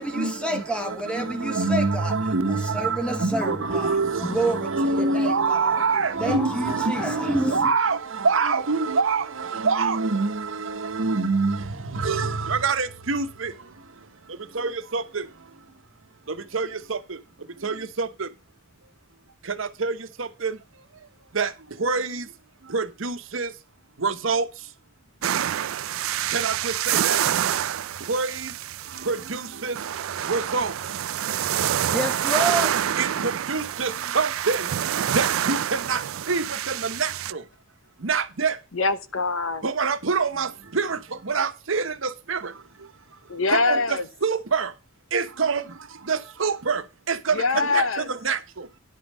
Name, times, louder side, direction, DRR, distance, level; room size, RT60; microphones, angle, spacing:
voice 1, 0.0-7.7 31.9-32.8, right 1 dB, 5° left, 1.5 m, -29 dB
voice 2, 1.4-8.0 8.2-10.4 10.8-11.6 12.0-13.5 14.6-15.0 16.5-17.0 17.6-18.1 19.8-19.9 20.4-20.5 21.4-21.5 21.8-22.2 22.7-23.5 24.0-24.4 26.3-27.2 28.1-28.3 29.1-29.7 30.3-30.7 33.0-34.6 35.1-35.6 35.9-36.0 36.3-37.1 38.0-38.5 39.6-40.5 40.7-40.9 41.3-41.8 42.3-42.4 43.7-43.8 44.2-44.7 45.1-45.6 46.1-46.8 47.1-47.3 47.7-47.8 48.2-48.4, right 4 dB, 70° right, 1.1 m, -25 dB
sound 1, 25.2-37.3, right 10 dB, 85° right, 0.4 m, -27 dB
voice 3, 38.7-39.6 43.3-44.1 47.3-48.1, left 4 dB, 75° left, 1.0 m, -24 dB
11.0 x 5.5 x 6.1 m
head